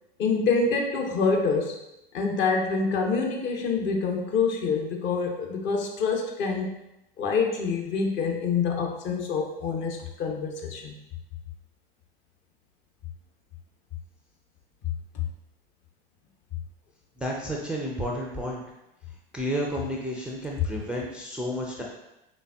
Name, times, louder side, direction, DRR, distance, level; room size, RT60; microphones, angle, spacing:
voice 1, 0.2-1.8 2.1-6.7 7.2-11.0, left 4 dB, 40° left, 2 dB, 0.7 m, -26 dB
voice 2, 17.2-18.6 19.3-21.8, equal, 5° right, -3 dB, 0.4 m, -31 dB
3.9 x 3.4 x 2.3 m, 0.89 s
figure-of-eight pair, 80°, 29 cm